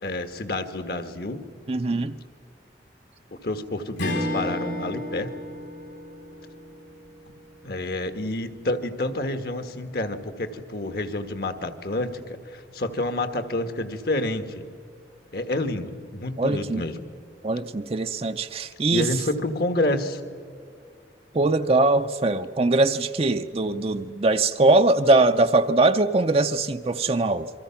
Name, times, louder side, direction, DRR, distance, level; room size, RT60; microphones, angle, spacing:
voice 1, 0.0-1.4 3.4-5.3 7.6-14.7 15.3-17.0 18.9-20.2, left 2 dB, 60° left, 1.5 m, -29 dB
voice 2, 1.7-2.1 16.4-16.9 17.4-19.1 21.3-27.5, right 2 dB, 35° right, 0.6 m, -21 dB
Strum, 4.0-8.6, left 1 dB, 85° left, 5.0 m, -34 dB
28.0 x 23.5 x 5.8 m
head